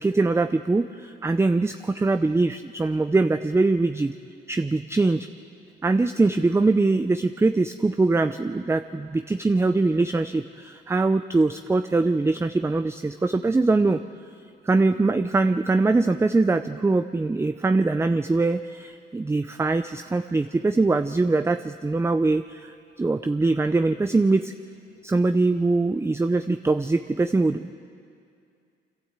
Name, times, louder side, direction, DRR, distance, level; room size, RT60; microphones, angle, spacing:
voice 1, 0.0-4.1 4.5-5.3 5.8-14.0 14.7-24.5 25.0-27.7, right 3 dB, 15° right, 9 dB, 0.5 m, -22 dB
25.5 x 13.0 x 8.1 m, 2.4 s
cardioid pair, 90°, 20 cm